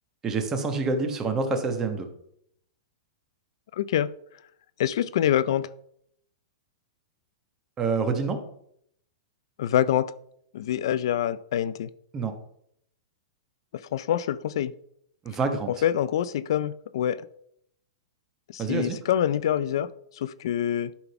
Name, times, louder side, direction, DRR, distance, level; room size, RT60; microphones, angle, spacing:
voice 1, 0.2-2.1 7.8-8.4 12.1-12.3 15.2-15.7 18.6-19.0, right 4 dB, 20° right, 5 dB, 1.2 m, -27 dB
voice 2, 3.7-4.1 4.8-5.7 9.6-10.1 10.5-11.9 13.9-14.7 15.7-17.3 18.5-20.9, left 10 dB, 65° left, 16 dB, 0.4 m, -26 dB
11.5 x 3.9 x 5.8 m, 0.71 s
hypercardioid pair, 150°, 3 cm